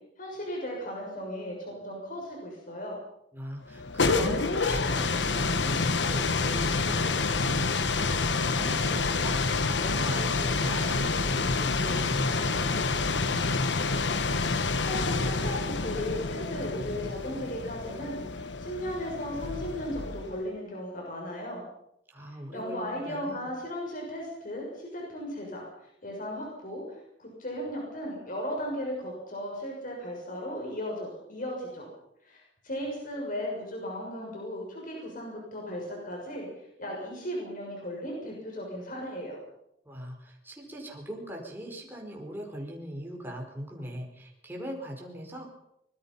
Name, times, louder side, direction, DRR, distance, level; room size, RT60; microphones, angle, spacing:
voice 1, 0.2-3.0 14.8-21.6 22.5-25.7 26.0-31.9 32.2-36.5 36.8-39.4, equal, 50° left, -1 dB, 6.8 m, -36 dB
voice 2, 3.3-13.4 22.1-23.5 39.8-45.5, right 1 dB, 10° right, 0 dB, 4.8 m, -41 dB
sound 1, 3.7-20.4, left 4 dB, 90° left, 1.3 m, -28 dB
25.0 x 21.5 x 5.7 m, 0.80 s
head